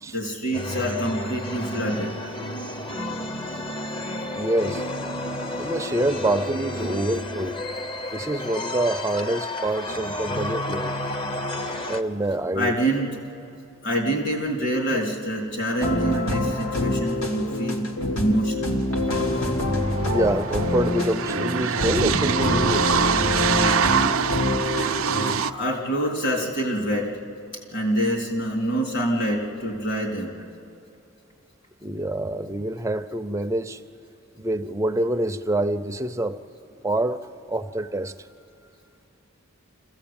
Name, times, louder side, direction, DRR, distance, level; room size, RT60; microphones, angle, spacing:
voice 1, 0.1-2.1 6.2-6.4 6.8-7.3 12.5-13.1 13.8-17.9 18.1-18.7 25.4-27.1 27.7-30.4, right 1 dB, 55° left, 3.7 m, -26 dB
sound 1, 0.5-12.0, left 1 dB, 25° left, 0.8 m, -31 dB
voice 2, 4.3-4.8 5.6-7.6 8.1-11.0 11.9-12.8 20.0-23.0 31.8-33.8 34.3-36.4 36.8-38.1, right 1 dB, 15° right, 0.6 m, -26 dB
sound 2, 15.8-25.3, left 1 dB, 90° left, 2.2 m, -26 dB
sound 3, 19.0-19.1 19.3-25.5, right 7 dB, 75° right, 0.5 m, -24 dB
25.5 x 15.5 x 8.9 m
head